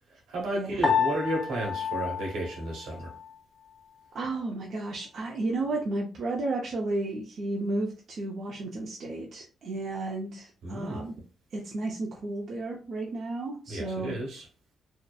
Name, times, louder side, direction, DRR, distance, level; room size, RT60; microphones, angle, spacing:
voice 1, 0.3-3.1 10.6-11.0 13.7-14.5, right 1 dB, 85° right, 1.1 m, -32 dB
Piano, 0.8-3.4, left 6 dB, 25° left, 0.7 m, -30 dB
voice 2, 4.1-11.1 11.5-14.1, right 2 dB, 60° right, 0.5 m, -33 dB
2.7 x 2.0 x 2.3 m
cardioid pair, 100°, 0 cm